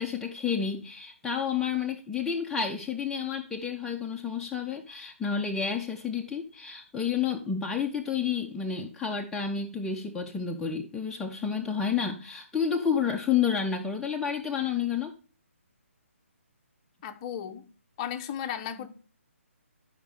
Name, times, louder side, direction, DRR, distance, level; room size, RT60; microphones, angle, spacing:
voice 1, 0.0-15.1, left 7 dB, 5° left, 0.5 m, -30 dB
voice 2, 17.0-17.7 18.0-18.9, left 9 dB, 25° left, 0.8 m, -35 dB
12.5 x 5.2 x 3.6 m
figure-of-eight pair, 145°, 8 cm